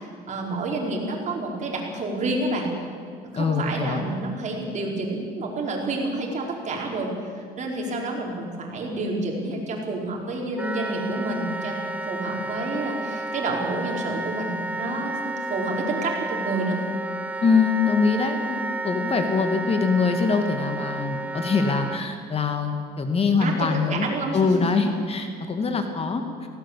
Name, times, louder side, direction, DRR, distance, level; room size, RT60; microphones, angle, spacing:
voice 1, 0.0-2.7 3.3-7.1 7.4-11.8 12.1-16.8 23.4-24.8, right 2 dB, 45° right, 0 dB, 5.3 m, -29 dB
voice 2, 3.4-4.0 17.4-26.2, left 4 dB, 35° left, 6 dB, 2.3 m, -23 dB
Wind instrument woodwind instrument, 10.6-22.0, right 2 dB, 10° right, 0.7 m, -32 dB
19.0 x 17.0 x 8.6 m, 2.2 s
cardioid pair, 110°, 17 cm